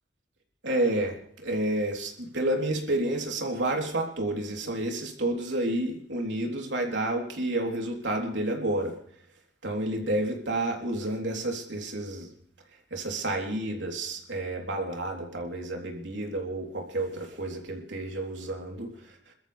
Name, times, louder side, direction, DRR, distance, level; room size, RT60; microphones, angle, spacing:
voice 1, 0.6-8.9 9.6-12.3 12.9-19.2, right 1 dB, 90° right, 1 dB, 3.6 m, -30 dB
27.5 x 13.5 x 3.4 m, 0.66 s
head